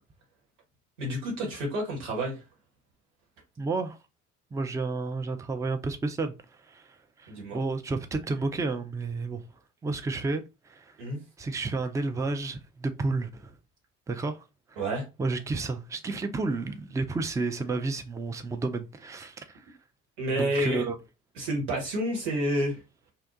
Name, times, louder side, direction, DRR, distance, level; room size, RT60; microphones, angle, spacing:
voice 1, 1.0-2.4 7.3-7.6 11.0-11.2 14.8-15.0 20.2-20.8 21.3-22.8, right 1 dB, 75° right, 1.4 m, -29 dB
voice 2, 3.6-4.0 4.5-6.3 6.7-6.8 7.2-9.4 9.8-10.4 10.7-10.8 11.4-13.5 14.1-14.4 15.2-19.4 20.4-20.9, right 3 dB, 10° right, 0.4 m, -31 dB
2.7 x 2.2 x 3.7 m
hypercardioid pair, 55°, 37 cm